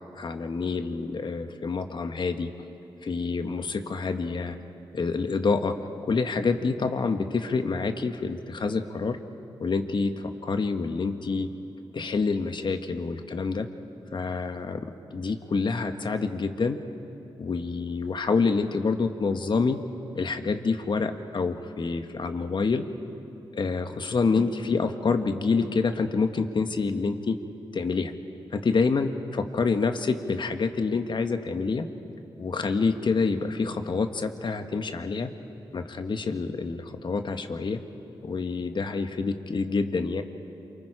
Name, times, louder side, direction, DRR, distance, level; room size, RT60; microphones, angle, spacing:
voice 1, 0.1-2.5 3.0-4.6 4.9-5.8 6.0-9.2 9.6-10.1 10.4-11.5 11.9-13.7 14.1-16.8 17.4-19.8 20.1-22.9 23.5-27.4 27.7-28.1 28.5-31.9 32.4-35.3 35.7-37.8 38.2-40.2, left 4 dB, 55° left, 7 dB, 1.4 m, -27 dB
27.5 x 24.5 x 5.0 m, 2.8 s
cardioid pair, 55°, 9 cm